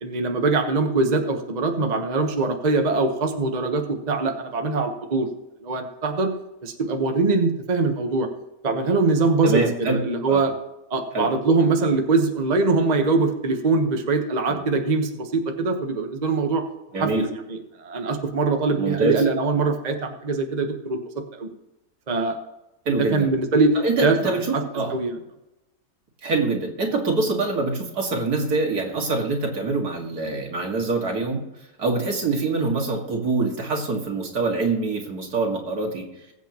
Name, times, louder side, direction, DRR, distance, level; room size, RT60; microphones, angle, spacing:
voice 1, 0.0-5.3 5.6-6.3 6.6-8.3 8.6-10.5 10.9-16.6 17.0-17.1 17.7-21.0 21.3-21.5 22.1-22.4 23.0-23.7 24.0-24.6 24.9-25.2, right 3 dB, 30° right, 4 dB, 1.2 m, -22 dB
voice 2, 9.4-10.0 10.3-10.4 11.1-11.3 14.5-14.6 16.9-17.3 18.8-19.2 22.9-23.3 23.8-25.0 26.2-31.4 31.8-36.1, right 3 dB, 75° right, 1 dB, 2.5 m, -25 dB
21.5 x 8.1 x 3.0 m, 0.93 s
omnidirectional pair, 1.7 m